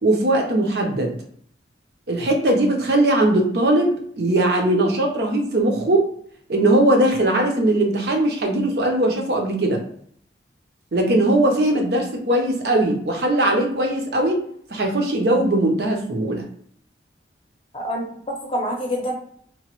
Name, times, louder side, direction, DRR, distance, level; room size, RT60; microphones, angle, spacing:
voice 1, 0.0-1.2 2.1-6.1 6.5-9.8 10.9-14.4 14.7-16.4, right 1 dB, 60° right, 2 dB, 0.6 m, -20 dB
voice 2, 17.7-19.1, equal, 30° left, 0 dB, 0.6 m, -27 dB
2.9 x 2.1 x 3.0 m, 0.62 s
head